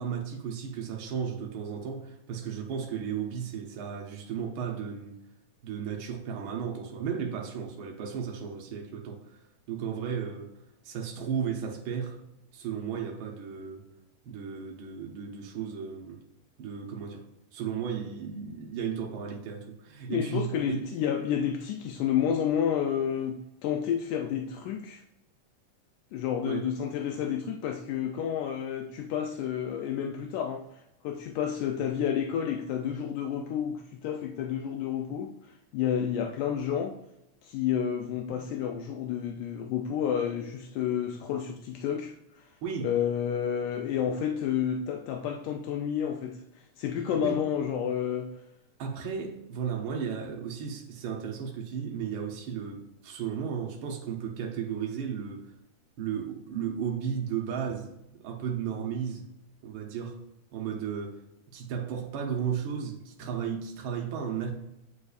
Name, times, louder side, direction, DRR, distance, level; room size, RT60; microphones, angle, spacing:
voice 1, 0.0-5.2 5.6-9.2 9.7-10.5 10.8-12.2 12.5-13.9 14.2-16.2 16.6-17.2 17.5-20.8 26.4-26.7 27.2-27.3 42.6-42.9 47.1-47.4 48.8-55.5 56.0-57.9 58.2-59.2 59.6-60.2 60.5-61.2 61.5-64.5, right 7 dB, 90° right, 1.1 m, -34 dB
voice 2, 20.1-25.0 26.1-30.6 31.0-35.3 35.7-37.0 37.4-42.2 42.8-46.4 46.8-48.3, left 9 dB, 85° left, 2.0 m, -30 dB
8.3 x 5.2 x 2.4 m
omnidirectional pair, 3.6 m